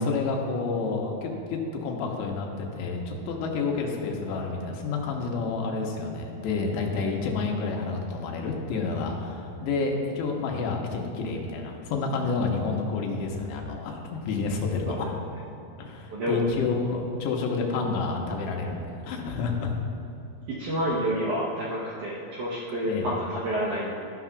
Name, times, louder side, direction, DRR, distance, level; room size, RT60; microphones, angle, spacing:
voice 1, 0.0-15.1 15.8-19.7 22.9-23.1, left 4 dB, 90° left, 1 dB, 3.1 m, -29 dB
voice 2, 11.2-11.5 14.9-15.0 16.1-16.5 20.6-23.9, equal, 75° right, -6 dB, 1.8 m, -29 dB
13.0 x 11.5 x 2.4 m, 2.6 s
omnidirectional pair, 5.0 m